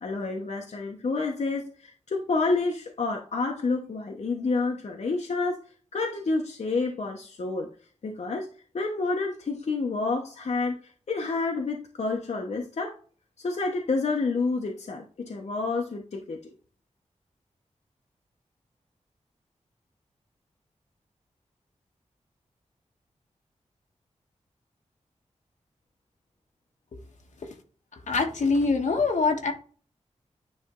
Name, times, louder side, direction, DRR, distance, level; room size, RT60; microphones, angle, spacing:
voice 1, 0.0-5.6 5.9-7.7 8.0-8.5 8.7-10.8 11.1-12.9 13.4-16.5, left 3 dB, 65° left, 1 dB, 1.0 m, -29 dB
voice 2, 28.1-29.5, left 4 dB, 85° left, 3 dB, 1.5 m, -24 dB
9.7 x 3.3 x 3.8 m, 0.40 s
wide cardioid pair, 110°, 12 cm